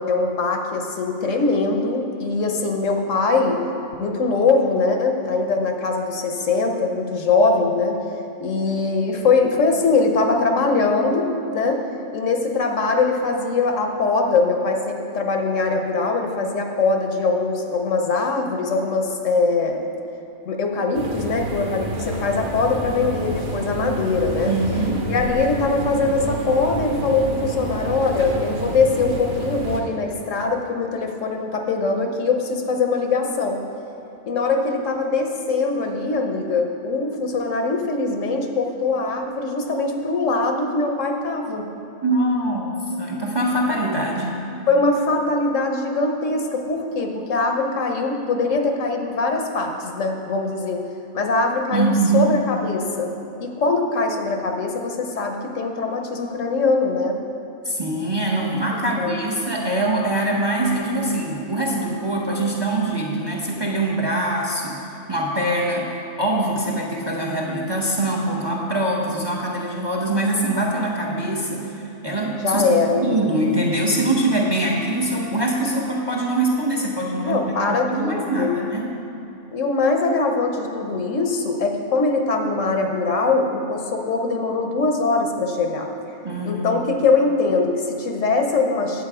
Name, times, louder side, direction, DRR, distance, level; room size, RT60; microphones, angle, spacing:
voice 1, 0.0-3.7 4.0-8.0 8.4-11.8 12.1-19.9 20.4-24.5 25.1-33.6 34.3-41.7 43.7-43.8 44.7-50.8 51.1-53.1 53.4-57.2 59.0-59.2 72.4-73.3 77.2-78.6 79.5-85.9 86.4-89.0, left 3 dB, 70° left, 3 dB, 1.2 m, -22 dB
sound 1, 20.9-29.8, right 1 dB, 40° right, 1.1 m, -29 dB
voice 2, 24.5-25.0 42.0-44.4 51.7-52.3 57.6-64.8 65.1-65.9 66.2-72.6 73.0-78.9 86.2-86.7, right 1 dB, 20° right, -2 dB, 0.8 m, -23 dB
9.2 x 7.8 x 4.8 m, 2.9 s
omnidirectional pair, 1.4 m